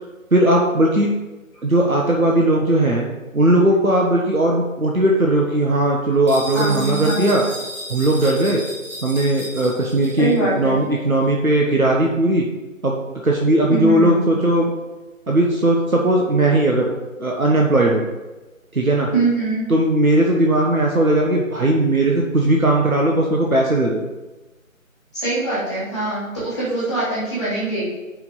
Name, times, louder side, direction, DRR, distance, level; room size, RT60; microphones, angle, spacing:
voice 1, 0.3-1.1 1.6-3.1 3.3-7.4 7.9-8.6 9.0-12.4 12.8-13.0 13.2-14.7 15.3-16.9 17.2-18.0 18.7-19.1 19.7-24.0, right 1 dB, 90° right, -1 dB, 1.5 m, -18 dB
sound 1, 6.3-10.4, left 1 dB, 30° right, 2.9 m, -34 dB
voice 2, 6.5-7.4 10.2-10.8 13.7-14.3 19.1-19.7 25.1-27.8, right 2 dB, ahead, -10 dB, 2.8 m, -23 dB
6.3 x 5.9 x 7.2 m, 1.1 s
figure-of-eight pair, 165°, 41 cm